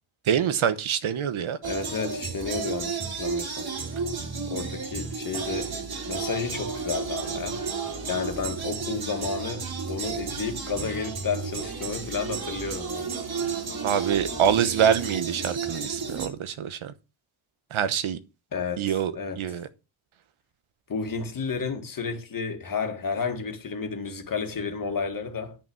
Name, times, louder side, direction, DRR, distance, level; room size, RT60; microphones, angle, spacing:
voice 1, 0.3-1.6 13.8-16.9 17.7-18.2 18.8-19.7, right 8 dB, 85° right, 1.2 m, -25 dB
voice 2, 1.6-3.7 4.5-5.8 6.1-7.6 8.1-13.1 18.5-19.4 20.9-25.6, left 5 dB, 45° left, 1.9 m, -31 dB
sound 1, 1.6-16.3, right 5 dB, 50° right, 2.6 m, -32 dB
10.5 x 5.9 x 6.1 m
wide cardioid pair, 160°, 47 cm